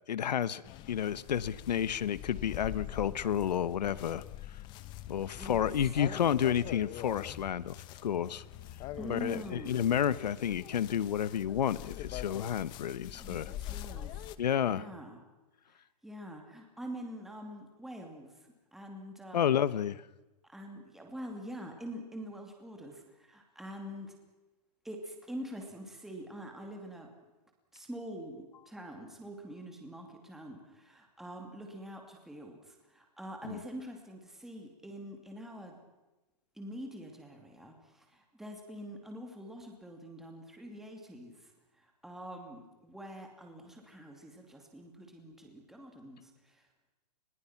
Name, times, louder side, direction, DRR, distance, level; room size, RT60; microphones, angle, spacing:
voice 1, 0.1-0.6 0.9-4.2 5.1-7.7 8.0-8.4 9.1-13.5 14.4-14.8 19.3-20.0 33.4-33.6, left 9 dB, 85° left, 18 dB, 1.2 m, -30 dB
sound 1, 0.6-14.3, left 13 dB, 20° left, 0.9 m, -44 dB
voice 2, 5.4-5.7 9.0-9.9 13.1-14.3 14.7-15.2 15.7-19.4 20.4-24.1 24.8-27.1 27.7-35.8 36.5-46.7, equal, ahead, 2 dB, 2.6 m, -45 dB
27.5 x 21.5 x 6.0 m, 1.1 s
hypercardioid pair, 165°, 21 cm